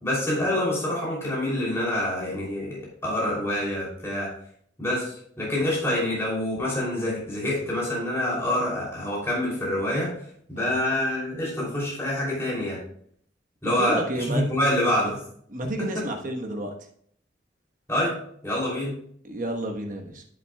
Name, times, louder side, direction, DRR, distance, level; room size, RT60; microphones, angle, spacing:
voice 1, 0.0-4.3 4.8-10.1 10.5-12.8 13.6-15.2 15.6-16.0 17.9-18.2 18.4-19.0, left 1 dB, 15° left, -6 dB, 3.0 m, -26 dB
voice 2, 13.6-14.4 15.5-16.7 19.2-20.2, right 1 dB, 45° right, 2 dB, 1.2 m, -31 dB
10.0 x 8.1 x 2.3 m, 0.63 s
head